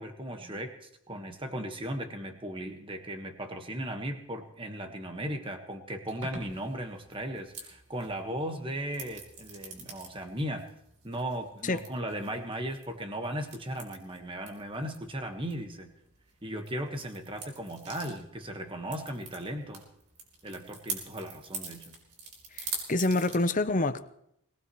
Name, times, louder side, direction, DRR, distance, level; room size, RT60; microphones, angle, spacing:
voice 1, 0.0-10.7 11.0-15.9 16.4-19.8 20.4-22.0, right 1 dB, 25° right, 1.5 m, -37 dB
sound 1, 6.1-23.4, right 4 dB, 85° right, 4.5 m, -45 dB
voice 2, 22.6-24.1, left 2 dB, 35° left, 0.8 m, -27 dB
21.5 x 18.5 x 3.2 m
head